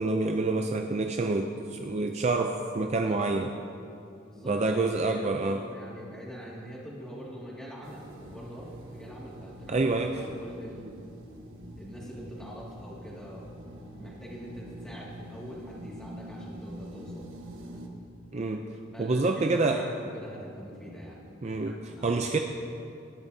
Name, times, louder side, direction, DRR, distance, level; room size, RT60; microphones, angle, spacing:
voice 1, 0.0-3.5 4.5-5.6 9.7-10.3 18.3-18.7 19.0-19.8 21.4-21.8 22.0-22.4, right 3 dB, 35° right, 4 dB, 0.4 m, -27 dB
voice 2, 4.2-9.7 10.0-11.0 11.8-13.6 14.0-17.3 18.9-21.2 21.7-22.2, equal, 5° left, -6 dB, 2.1 m, -44 dB
sound 1, 7.8-17.9, right 1 dB, 80° right, 1.2 m, -45 dB
19.0 x 10.5 x 2.7 m, 2.6 s
head